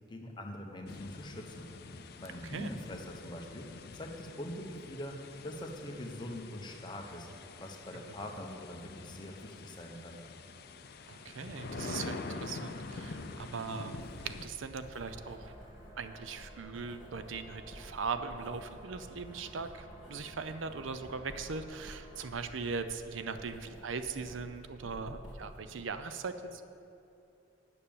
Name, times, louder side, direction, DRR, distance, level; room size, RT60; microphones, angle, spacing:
voice 1, 0.1-1.7 2.2-3.7 3.9-5.2 5.4-7.3 7.6-10.2, left 1 dB, 25° left, 2 dB, 0.9 m, -43 dB
sound 1, 0.9-14.5, left 3 dB, 50° left, 0.5 m, -46 dB
voice 2, 11.1-15.5 16.0-26.6, right 4 dB, 75° right, 10 dB, 0.5 m, -40 dB
Writing, 13.8-25.8, equal, 5° right, 1.7 m, -52 dB
sound 2, 15.1-22.3, equal, 20° right, 1.4 m, -56 dB
8.8 x 6.8 x 7.0 m, 2.8 s
head